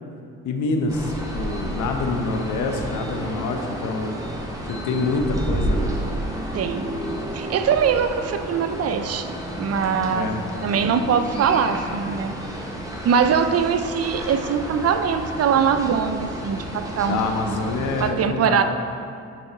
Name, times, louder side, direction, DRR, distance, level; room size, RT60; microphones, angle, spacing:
voice 1, 0.4-4.2 4.6-6.0 10.1-10.4 17.1-18.6, left 3 dB, 75° left, 4 dB, 0.8 m, -26 dB
sound 1, 0.9-18.1, right 1 dB, 10° right, 1.2 m, -31 dB
voice 2, 6.5-6.9 7.3-9.3 9.6-10.3 10.6-12.3 13.0-17.6 18.0-18.6, right 7 dB, 55° right, 9 dB, 0.6 m, -22 dB
10.0 x 4.4 x 3.9 m, 2.4 s
cardioid pair, 90°, 30 cm